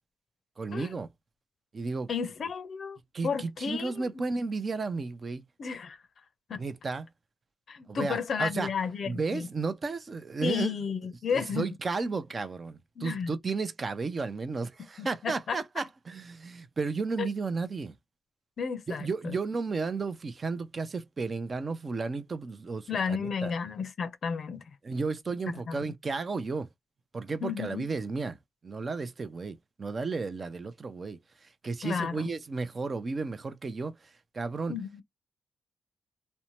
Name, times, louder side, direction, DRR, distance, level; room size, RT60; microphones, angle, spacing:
voice 1, 0.6-1.1 1.7-2.1 3.1-5.4 6.6-7.1 7.9-8.7 9.1-10.7 11.3-18.0 18.9-23.5 24.8-26.7 27.1-28.4 28.6-34.8, right 4 dB, 40° right, 0.5 m, -33 dB
voice 2, 2.1-4.1 5.6-6.0 6.5-6.6 7.7-9.5 10.4-11.7 13.0-13.3 15.0-15.6 17.2-17.3 18.6-19.4 22.9-24.6 25.5-25.9 27.4-27.9 31.8-32.3 34.7-35.0, left 6 dB, 60° left, 0.5 m, -33 dB
2.6 x 2.1 x 3.0 m
cardioid pair, 70°, 0 cm